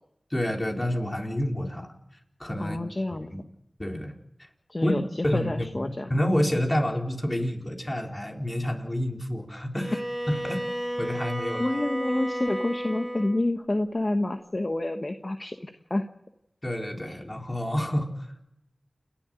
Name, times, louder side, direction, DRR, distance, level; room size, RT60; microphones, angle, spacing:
voice 1, 0.3-1.9 2.4-2.8 3.3-3.4 3.8-4.5 4.8-5.0 5.2-10.0 10.3-11.6 16.6-18.4, equal, 25° left, 1 dB, 4.3 m, -29 dB
voice 2, 2.6-3.3 4.7-5.0 5.3-6.1 11.6-16.0, left 1 dB, 45° left, 6 dB, 1.3 m, -28 dB
Bowed string instrument, 9.7-13.5, equal, 10° right, 4.9 m, -33 dB
29.0 x 11.5 x 9.1 m, 0.84 s
cardioid pair, 40°, 0 cm